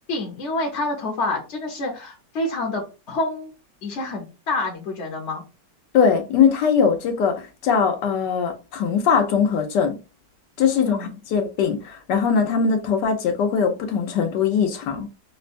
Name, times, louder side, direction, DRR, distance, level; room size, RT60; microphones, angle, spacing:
voice 1, 0.1-3.5 3.8-5.4 10.6-11.1, left 2 dB, 50° left, 1.0 m, -28 dB
voice 2, 5.9-10.0 10.6-15.1, left 6 dB, 80° left, 1.4 m, -21 dB
5.8 x 2.2 x 2.5 m
omnidirectional pair, 1.9 m